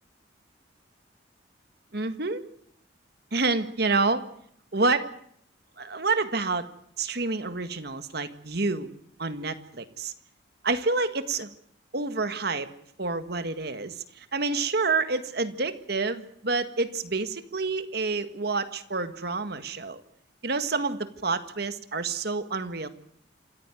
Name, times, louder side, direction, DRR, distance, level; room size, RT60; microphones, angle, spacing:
voice 1, 1.9-2.4 3.3-4.2 4.7-5.1 5.8-6.7 7.0-8.9 9.2-10.1 10.6-11.5 11.9-12.7 13.0-20.0 20.4-22.9, right 3 dB, 60° right, 10 dB, 1.8 m, -28 dB
27.0 x 14.5 x 9.3 m, 0.67 s
head